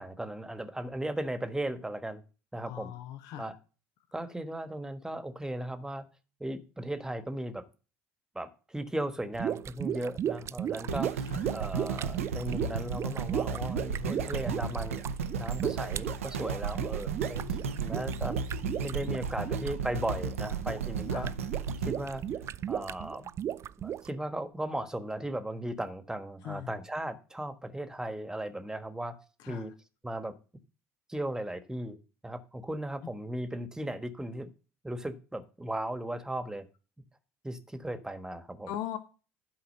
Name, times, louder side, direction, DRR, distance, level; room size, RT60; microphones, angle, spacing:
voice 1, 0.0-2.2 2.5-2.9 3.4-3.5 4.1-6.0 6.4-7.6 8.3-11.2 11.5-15.0 15.4-18.4 18.8-21.3 21.8-22.2 22.7-23.3 23.8-29.2 29.5-29.7 30.0-30.3 31.1-32.0 32.2-34.5 34.8-36.7 37.4-38.7, right 1 dB, 10° right, 1.4 m, -36 dB
voice 2, 2.7-3.5 11.3-11.5 17.4-18.0 21.1-21.3 26.4-26.8 29.4-29.7 33.0-33.1 38.7-39.0, left 11 dB, 65° left, 1.1 m, -40 dB
sound 1, 9.3-24.1, right 10 dB, 40° right, 0.4 m, -36 dB
sound 2, 10.9-23.1 23.6-23.7, right 5 dB, 85° right, 0.7 m, -34 dB
11.5 x 4.8 x 6.6 m
hypercardioid pair, 65°, 7 cm